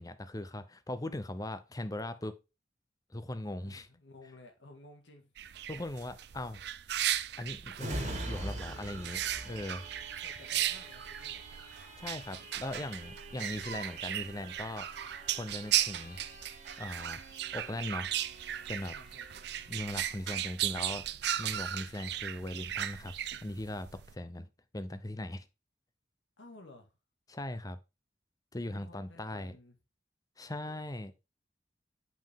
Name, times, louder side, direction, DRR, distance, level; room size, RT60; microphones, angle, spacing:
voice 1, 0.0-2.4 3.1-3.9 5.7-6.6 7.4-9.8 12.0-14.9 15.3-16.2 16.8-17.2 17.5-18.1 18.7-18.9 19.7-21.1 21.4-25.5 27.3-27.8 28.5-29.5 30.4-31.1, left 1 dB, 20° left, 0.7 m, -39 dB
voice 2, 3.5-5.3 10.2-11.5 18.9-19.5 26.4-26.9 28.7-29.8, left 2 dB, 90° left, 2.0 m, -55 dB
sound 1, 5.4-24.1, right 12 dB, 60° right, 0.5 m, -36 dB
sound 2, 7.8-21.1 21.5-21.7, right 1 dB, 40° right, 2.1 m, -45 dB
7.7 x 5.5 x 3.6 m
head